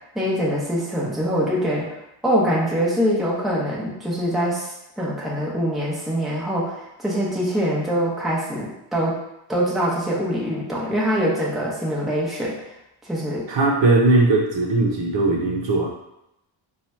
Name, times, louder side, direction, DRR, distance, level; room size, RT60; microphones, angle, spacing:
voice 1, 0.1-1.9 2.2-9.1 9.5-12.5 13.1-13.5, equal, ahead, -6 dB, 0.9 m, -24 dB
voice 2, 13.5-15.9, right 2 dB, 60° right, -1 dB, 0.8 m, -19 dB
2.8 x 2.4 x 4.2 m, 0.86 s
cardioid pair, 115°, 49 cm